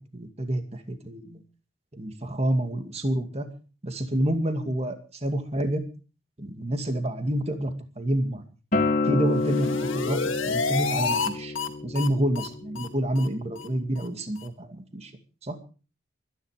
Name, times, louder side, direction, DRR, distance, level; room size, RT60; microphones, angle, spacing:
voice 1, 0.1-1.4 1.9-3.5 3.8-5.8 6.4-8.4 9.0-11.5 11.8-15.1 15.4-15.6, right 1 dB, 30° right, 6 dB, 2.3 m, -28 dB
Acoustic guitar, 8.7-13.9, left 3 dB, 40° left, 2.6 m, -29 dB
sound 1, 9.3-11.3 11.5-11.7 11.9-12.1 12.3-12.5 12.7-12.9 13.1-13.3 13.6-13.7 14.0-14.1 14.4-14.5, left 4 dB, 85° left, 2.4 m, -29 dB
24.0 x 10.5 x 5.0 m, 0.38 s
head